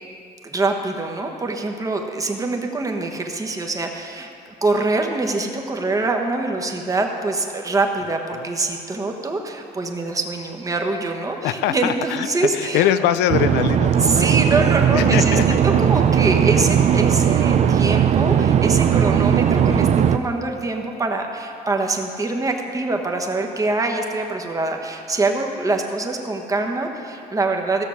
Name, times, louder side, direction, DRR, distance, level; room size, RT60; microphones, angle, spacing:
voice 1, 0.4-4.3 4.6-12.9 14.0-15.4 15.6-27.8, right 3 dB, 20° right, 2 dB, 1.2 m, -24 dB
voice 2, 11.4-14.2 14.9-15.8 18.9-19.3, left 11 dB, 85° left, 13 dB, 0.5 m, -23 dB
sound 1, 13.3-20.2, right 8 dB, 40° right, 0.5 m, -17 dB
15.0 x 6.6 x 6.4 m, 2.7 s
cardioid pair, 110°, 17 cm